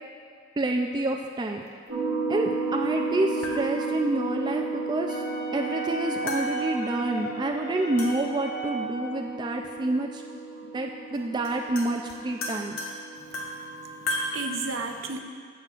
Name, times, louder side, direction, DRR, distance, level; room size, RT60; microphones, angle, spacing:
voice 1, 0.6-1.7 2.3-5.2 5.5-10.2 10.7-12.8, right 2 dB, 20° right, 2 dB, 0.3 m, -28 dB
sound 1, 1.9-14.3, right 3 dB, 90° right, 1.6 m, -34 dB
sound 2, 2.8-2.9 3.4-4.2 6.3-7.1 8.0-8.5 10.0-10.1 11.1-11.2 11.4-14.4, left 2 dB, 75° left, 1.1 m, -36 dB
Wind instrument woodwind instrument, 5.1-9.3, right 2 dB, 40° left, 1.2 m, -35 dB
voice 2, 13.8-15.2, right 4 dB, 70° right, 4 dB, 0.8 m, -34 dB
15.0 x 7.1 x 2.5 m, 2.2 s
head